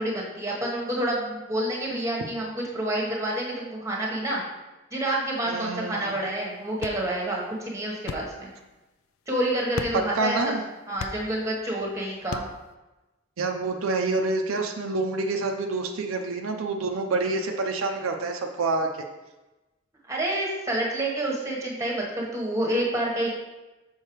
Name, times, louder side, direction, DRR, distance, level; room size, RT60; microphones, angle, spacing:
voice 1, 0.0-4.4 4.9-8.5 9.3-10.4 10.9-12.5 20.1-23.3, right 1 dB, 15° right, -2 dB, 1.1 m, -28 dB
voice 2, 5.5-6.2 10.1-10.6 13.4-18.9, right 3 dB, 75° right, 4 dB, 0.5 m, -27 dB
sound 1, 6.0-12.7, left 5 dB, 75° left, 0.4 m, -41 dB
6.5 x 5.5 x 3.0 m, 1.1 s
head